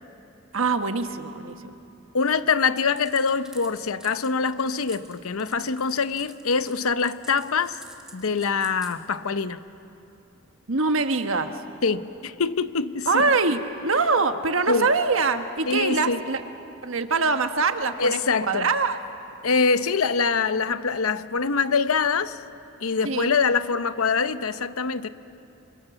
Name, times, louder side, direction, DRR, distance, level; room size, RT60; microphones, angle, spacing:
voice 1, 0.5-1.7 10.7-11.6 13.1-16.4 16.8-18.2 18.5-19.0 23.0-23.3, right 4 dB, 70° right, 7 dB, 1.3 m, -23 dB
voice 2, 2.1-7.8 8.1-9.6 11.8-13.3 14.7-14.9 15.7-16.2 18.0-18.7 19.4-22.4 22.8-25.1, left 5 dB, 85° left, 12 dB, 0.8 m, -24 dB
sound 1, 2.8-8.9, right 1 dB, 5° right, 1.9 m, -47 dB
28.0 x 25.5 x 7.1 m, 3.0 s
head